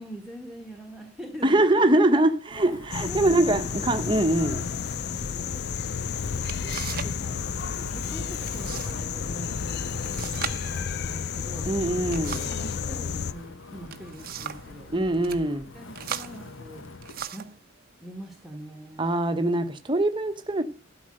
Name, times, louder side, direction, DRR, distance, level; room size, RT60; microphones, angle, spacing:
voice 1, 0.0-1.8 2.1-2.2 3.0-3.5 4.9-5.6 6.3-11.8 12.4-15.4 15.7-16.8 17.3-17.5 18.0-19.4, equal, ahead, 1.6 m, -44 dB
voice 2, 1.4-4.7 11.7-12.4 14.9-15.6 19.0-20.6, right 1 dB, 25° right, 1.1 m, -23 dB
Wind, 2.5-17.2, left 3 dB, 75° left, 1.1 m, -44 dB
sound 1, 2.9-13.3, left 6 dB, 55° left, 0.5 m, -31 dB
sound 2, 6.5-7.2 7.5-8.0 8.5-9.0 9.3-9.4 10.0-12.7 13.7-14.7 15.1-15.4 15.9-17.6 18.4-18.5 19.1-19.6, right 8 dB, 45° right, 0.8 m, -38 dB
12.5 x 4.9 x 7.9 m
head